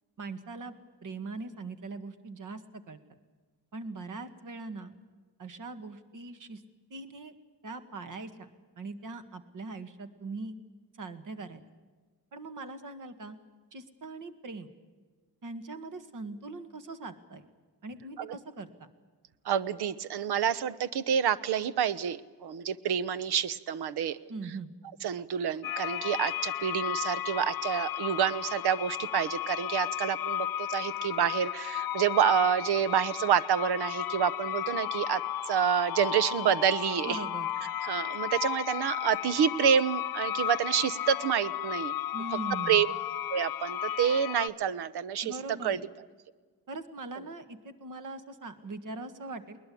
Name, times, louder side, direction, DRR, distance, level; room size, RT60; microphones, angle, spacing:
voice 1, 0.2-0.7 1.0-3.0 3.7-4.9 5.4-6.6 6.9-7.3 7.6-8.5 8.8-10.6 11.0-11.6 12.3-13.4 13.7-14.7 15.4-17.5 17.8-18.7 24.3-24.7 37.1-37.5 42.1-42.8 45.2-45.8 46.7-49.6, right 3 dB, 50° right, 10 dB, 2.0 m, -41 dB
voice 2, 19.4-24.2 24.4-24.6 25.0-35.2 35.5-37.3 37.8-41.9 42.3-42.4 42.7-42.9 43.3-45.4 45.6-45.8, right 8 dB, 75° right, 17 dB, 1.1 m, -28 dB
sound 1, 25.6-44.5, left 12 dB, 60° left, 0.7 m, -34 dB
21.0 x 20.5 x 8.6 m, 1.4 s
wide cardioid pair, 150°, 40 cm